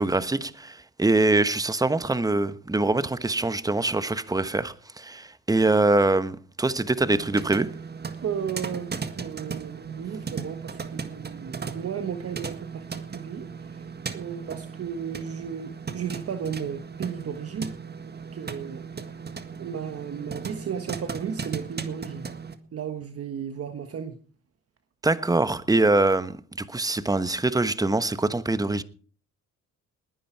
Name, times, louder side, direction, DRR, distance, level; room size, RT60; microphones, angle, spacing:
voice 1, 0.0-7.7 25.0-28.8, right 2 dB, 10° right, 1.1 m, -24 dB
sound 1, 7.0-22.6, right 5 dB, 35° right, 1.8 m, -37 dB
voice 2, 8.2-13.9 14.1-17.7 18.0-18.8 19.6-22.3 22.7-24.2, right 7 dB, 50° right, 1.4 m, -34 dB
20.0 x 10.0 x 4.6 m
cardioid pair, 90°, 30 cm